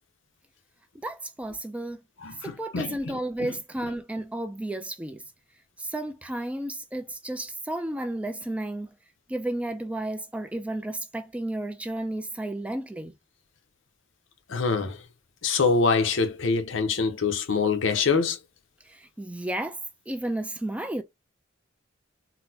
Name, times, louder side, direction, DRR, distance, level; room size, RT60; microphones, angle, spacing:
voice 1, 1.0-2.0 2.4-5.2 5.8-8.9 9.3-13.1 18.9-19.8 20.1-21.0, right 1 dB, 5° right, 0.3 m, -32 dB
voice 2, 2.2-3.5 14.5-15.0 15.4-18.4, left 4 dB, 75° left, 0.7 m, -25 dB
3.9 x 2.1 x 2.7 m
head